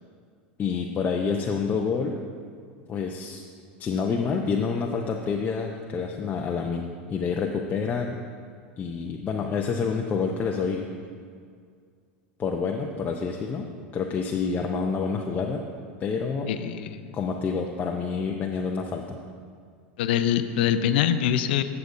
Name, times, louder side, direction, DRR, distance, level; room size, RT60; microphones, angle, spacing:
voice 1, 0.6-2.2 2.9-3.4 3.8-8.2 8.8-10.9 12.4-13.7 13.9-15.6 16.0-16.5 17.1-19.2, left 5 dB, 30° left, 1 dB, 0.6 m, -28 dB
voice 2, 16.5-17.1 20.0-21.6, left 10 dB, 75° left, 10 dB, 0.5 m, -24 dB
15.0 x 6.8 x 2.6 m, 2.1 s
hypercardioid pair, 95°, 6 cm